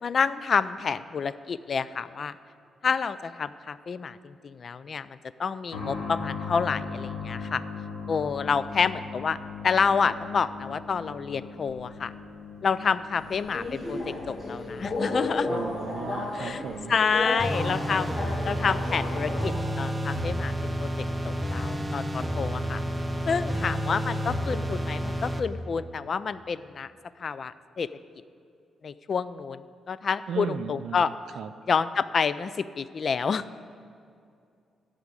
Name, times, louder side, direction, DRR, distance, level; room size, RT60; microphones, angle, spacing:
voice 1, 0.0-2.4 2.8-7.6 8.1-9.4 9.6-12.1 12.6-15.5 16.3-16.6 16.9-18.2 18.4-20.5 20.8-22.8 23.3-26.9 27.2-27.9 28.8-31.1 31.7-33.4, left 6 dB, 45° left, 15 dB, 0.3 m, -28 dB
sound 1, 5.7-20.1 20.4-20.5 21.5-21.6, left 4 dB, 90° left, 2.5 m, -40 dB
Subway metro underground, 13.2-20.0, left 2 dB, 25° left, 1.6 m, -33 dB
voice 2, 15.5-17.0 30.3-31.1 31.4-31.5, right 7 dB, 70° right, 13 dB, 0.4 m, -36 dB
sound 2, 17.4-25.4, equal, 10° right, 0.7 m, -30 dB
13.5 x 5.0 x 8.2 m, 2.4 s
cardioid pair, 105°, 0 cm